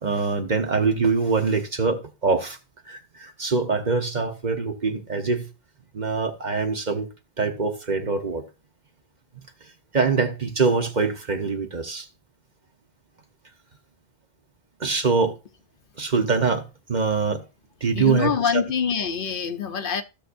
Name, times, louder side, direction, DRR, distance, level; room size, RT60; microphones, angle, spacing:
voice 1, 0.0-2.6 2.9-5.5 5.9-7.1 7.4-8.4 9.9-12.1 14.8-15.3 16.0-16.6 16.9-17.4 17.8-18.3, right 4 dB, 45° right, 1.1 m, -24 dB
voice 2, 17.9-20.0, left 7 dB, 60° left, 0.8 m, -25 dB
15.5 x 6.5 x 2.6 m
omnidirectional pair, 1.1 m